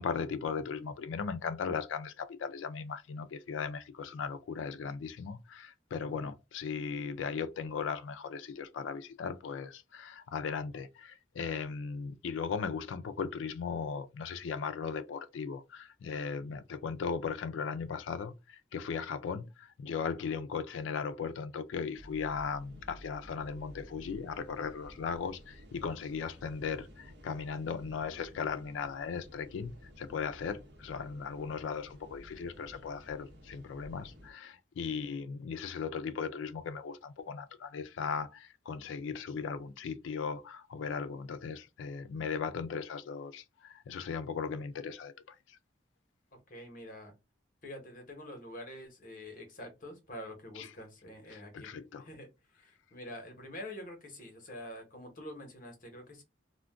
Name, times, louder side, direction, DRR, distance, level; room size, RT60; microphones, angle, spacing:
voice 1, 0.0-45.1 50.6-50.7 51.3-52.1, left 5 dB, 80° left, 0.4 m, -37 dB
sound 1, 21.9-34.3, equal, 65° right, 0.9 m, -53 dB
voice 2, 46.5-47.1 47.6-52.3 52.6-56.2, left 1 dB, 45° left, 1.0 m, -46 dB
2.4 x 2.1 x 3.4 m
head